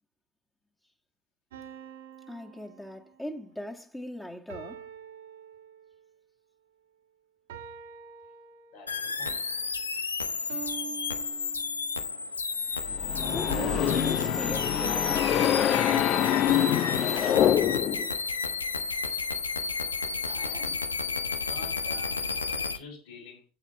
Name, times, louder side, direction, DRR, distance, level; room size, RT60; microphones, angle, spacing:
sound 1, 1.5-3.4 4.5-6.2 7.5-9.1 10.5-12.2 13.5-15.1 16.5-18.8, right 9 dB, 75° right, 1.9 m, -45 dB
voice 1, 2.3-4.9 9.9-10.6 13.2-16.1, left 1 dB, 10° left, 1.7 m, -40 dB
voice 2, 8.7-9.7 20.2-20.8 21.4-23.5, left 4 dB, 70° left, 4.0 m, -48 dB
sound 2, 8.9-22.8, left 4 dB, 90° left, 0.9 m, -32 dB
sound 3, 12.8-18.1, left 11 dB, 45° left, 0.6 m, -25 dB
9.0 x 8.9 x 4.4 m
figure-of-eight pair, 75°, 0 cm